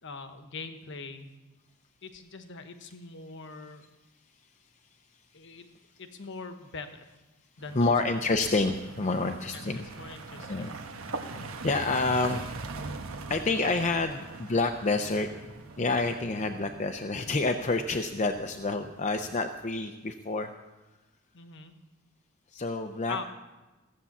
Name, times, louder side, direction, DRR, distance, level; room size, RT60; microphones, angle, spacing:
voice 1, 0.0-1.3 2.0-3.9 5.3-5.7 6.0-7.1 7.6-7.9 9.5-10.7 21.3-21.7 23.1-23.2, left 4 dB, 55° left, 8 dB, 1.1 m, -42 dB
sound 1, 7.6-19.4, right 3 dB, 65° right, 1.2 m, -42 dB
voice 2, 7.7-9.8 10.4-10.8 11.1-12.7 13.3-15.3 15.8-20.5 22.5-23.2, left 3 dB, 30° left, 5 dB, 0.6 m, -28 dB
15.0 x 8.4 x 7.2 m, 1.1 s
head